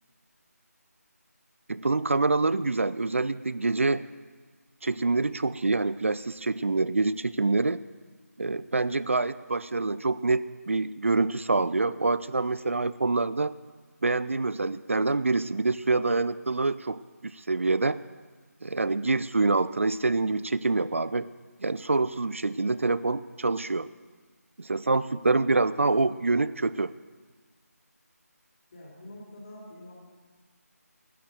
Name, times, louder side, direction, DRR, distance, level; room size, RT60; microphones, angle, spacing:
voice 1, 1.7-4.0 4.8-7.8 8.4-13.5 14.0-18.0 18.6-21.3 21.6-23.9 24.6-26.9, right 3 dB, 50° right, 16 dB, 0.4 m, -26 dB
voice 2, 28.7-29.9, left 1 dB, 35° left, -7 dB, 3.7 m, -45 dB
13.5 x 9.6 x 8.0 m, 1.4 s
figure-of-eight pair, 160°, 9 cm